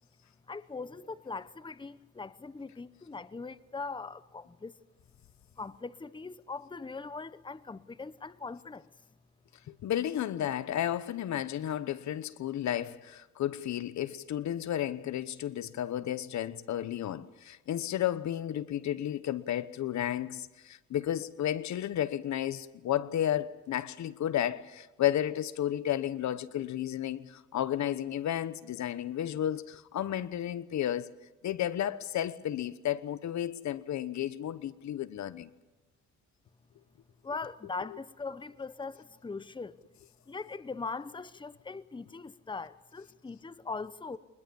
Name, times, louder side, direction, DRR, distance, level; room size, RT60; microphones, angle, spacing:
voice 1, 0.5-4.7 5.5-8.9 37.2-39.8 40.3-44.2, left 4 dB, 15° left, 1.0 m, -41 dB
voice 2, 9.7-31.1 31.4-35.5, left 11 dB, 65° left, 1.1 m, -32 dB
23.5 x 20.5 x 7.1 m
cardioid pair, 90°, 30 cm